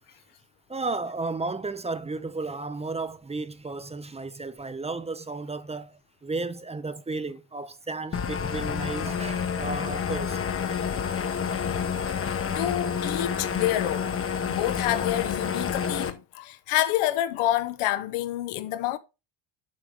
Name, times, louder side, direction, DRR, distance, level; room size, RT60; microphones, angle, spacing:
voice 1, 0.7-10.4, right 3 dB, 15° right, 0.6 m, -33 dB
sound 1, 8.1-16.1, left 7 dB, 30° left, 0.9 m, -29 dB
voice 2, 12.2-14.2 14.4-19.0, left 14 dB, 80° left, 1.1 m, -28 dB
7.7 x 5.1 x 4.7 m
cardioid pair, 115°, 48 cm